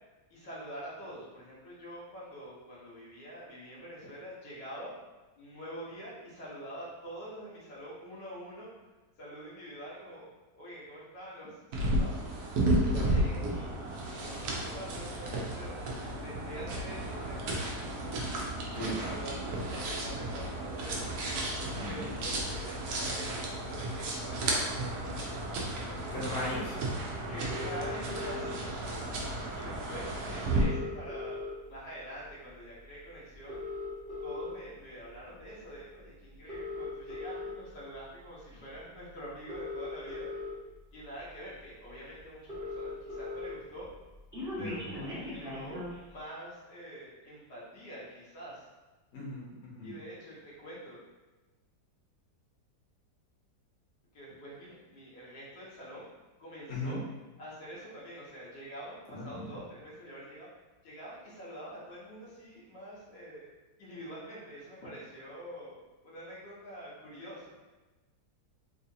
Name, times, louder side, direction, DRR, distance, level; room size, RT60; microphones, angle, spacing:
voice 1, 0.3-4.9 5.4-8.7 9.2-10.3 10.5-12.2 12.8-13.7 14.2-18.1 18.6-21.1 21.7-26.5 27.3-31.4 31.7-33.6 34.2-40.3 40.9-43.9 44.6-48.7 49.8-51.0 54.1-56.1 56.4-57.0 57.4-60.5 60.8-63.4 63.8-67.6, equal, 75° left, -7 dB, 1.6 m, -46 dB
sound 1, 11.7-30.6, right 1 dB, 70° right, 1.0 m, -33 dB
voice 2, 21.6-22.1 26.1-26.8 44.6-44.9 49.1-49.9 56.7-57.0 59.1-59.4, left 1 dB, 50° left, -6 dB, 1.2 m, -38 dB
sound 2, 27.5-28.5 29.7-29.8 30.0-30.1 30.3-31.8 32.3-32.5 33.3-34.5 35.2-35.4 36.3-37.5 38.7-38.8 39.3-40.5 41.2-41.3 41.6-41.7 41.9-42.0 42.2-43.5 43.8-46.0, left 2 dB, 5° right, 0.9 m, -39 dB
3.8 x 2.7 x 2.7 m, 1.2 s
omnidirectional pair, 1.9 m